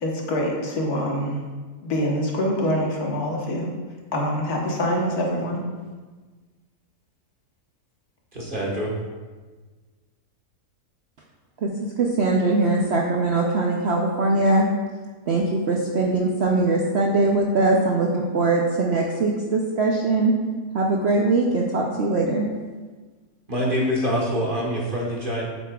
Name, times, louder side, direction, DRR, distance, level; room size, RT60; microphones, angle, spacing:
voice 1, 0.0-1.4 1.8-3.7 4.1-5.7, equal, 70° left, -1 dB, 1.7 m, -25 dB
voice 2, 8.3-8.9 23.5-25.5, equal, 35° right, -3 dB, 1.5 m, -25 dB
voice 3, 12.0-14.7 15.3-20.3 20.7-22.5, right 2 dB, 55° right, -1 dB, 0.7 m, -21 dB
8.4 x 7.9 x 2.3 m, 1.4 s
omnidirectional pair, 1.7 m